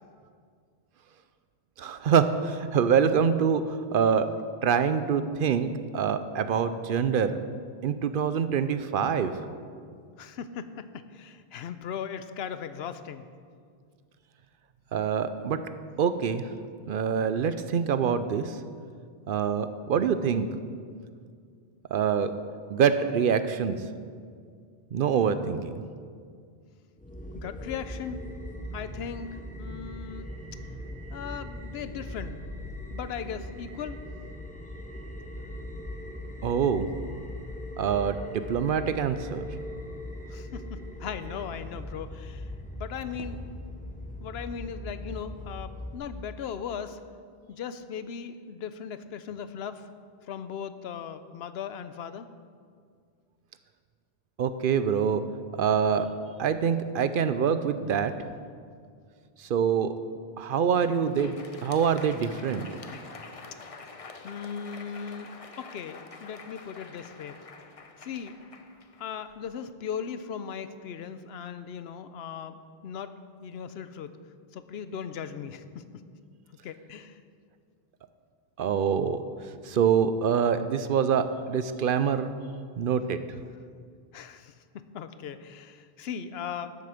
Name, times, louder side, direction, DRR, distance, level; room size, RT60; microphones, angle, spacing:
voice 1, 1.8-4.3 4.6-7.4 7.8-9.3 14.9-15.6 16.0-16.5 16.9-18.6 19.3-20.5 21.9-22.3 22.7-23.8 24.9-25.7 36.4-36.9 37.8-39.4 54.4-55.2 55.6-56.1 56.4-58.1 59.4-59.9 60.4-61.4 61.6-62.7 78.6-79.2 79.6-82.3 82.8-83.4, right 7 dB, 65° right, 11 dB, 0.7 m, -25 dB
voice 2, 10.2-13.2 27.3-28.2 28.7-30.3 31.1-32.4 32.9-34.0 40.3-42.4 42.8-43.4 44.2-47.0 47.5-49.8 50.3-52.3 64.2-65.3 65.6-67.4 68.0-68.4 69.0-73.1 73.4-74.2 74.5-75.9 76.6-77.2 84.1-86.8, left 7 dB, 85° left, 11 dB, 0.9 m, -38 dB
sound 1, 27.0-46.0, left 1 dB, 10° left, 0.7 m, -40 dB
Crowd, 60.6-69.6, left 4 dB, 40° left, 0.7 m, -47 dB
13.0 x 7.7 x 5.0 m, 2.1 s
omnidirectional pair, 1.0 m